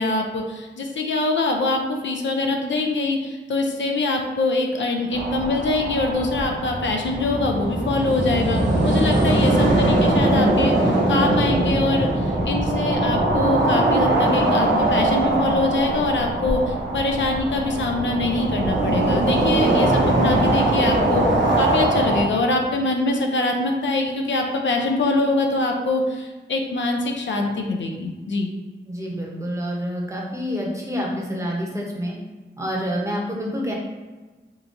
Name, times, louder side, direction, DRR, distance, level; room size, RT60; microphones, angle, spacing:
voice 1, 0.0-21.2 21.6-28.5, left 2 dB, 80° left, 2 dB, 0.5 m, -24 dB
sound 1, 5.1-22.3, right 1 dB, 75° right, 0.7 m, -21 dB
voice 2, 9.4-9.8 28.9-32.1 32.6-33.7, equal, 15° right, -2 dB, 0.7 m, -28 dB
3.6 x 2.8 x 2.5 m, 1.2 s
wide cardioid pair, 75°, 19 cm